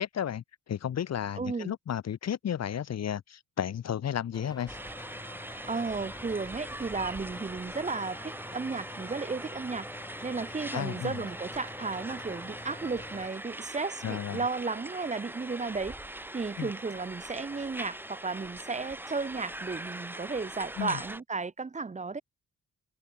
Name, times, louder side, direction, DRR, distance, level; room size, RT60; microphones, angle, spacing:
voice 1, 0.0-4.8 10.7-11.1 14.0-14.4 16.6-16.7 20.8-21.0, left 9 dB, 55° left, 1.6 m, -33 dB
voice 2, 1.4-1.7 5.7-9.9 10.2-16.0 16.3-22.2, right 4 dB, 20° right, 1.7 m, -34 dB
sound 1, 4.3-13.3, left 2 dB, 10° left, 7.0 m, -47 dB
sound 2, 4.7-21.2, right 1 dB, 5° right, 3.5 m, -42 dB
wide cardioid pair, 170°, 32 cm